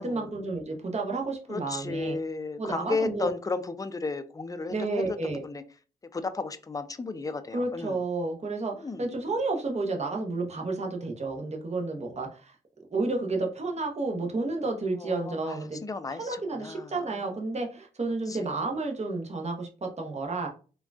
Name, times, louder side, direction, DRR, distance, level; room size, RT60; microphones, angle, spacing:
voice 1, 0.0-2.2 2.6-3.3 4.7-5.4 7.5-12.6 12.9-15.8 16.1-20.5, right 3 dB, 40° right, 0.8 m, -31 dB
voice 2, 1.5-5.6 6.1-8.0 8.8-9.2 15.0-15.6 15.8-17.2 18.3-18.5, left 3 dB, 20° left, 0.4 m, -34 dB
3.6 x 2.3 x 2.3 m
supercardioid pair, 45°, 18 cm